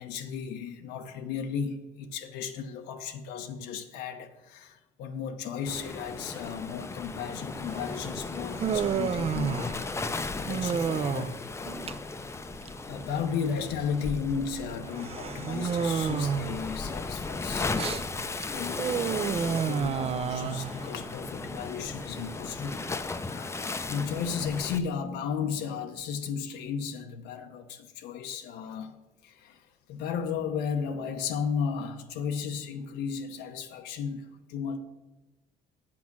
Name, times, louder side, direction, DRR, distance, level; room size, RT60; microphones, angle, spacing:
voice 1, 0.0-9.8 10.3-11.4 12.3-12.4 12.8-17.8 18.5-29.0 29.2-29.6 29.9-34.8, left 6 dB, 90° left, 0.7 m, -34 dB
Waves surf, 5.7-24.8, left 3 dB, 15° left, 0.5 m, -36 dB
Human voice, 7.7-22.9, right 7 dB, 35° right, 0.4 m, -32 dB
8.5 x 6.1 x 5.9 m
cardioid pair, 110°, 17 cm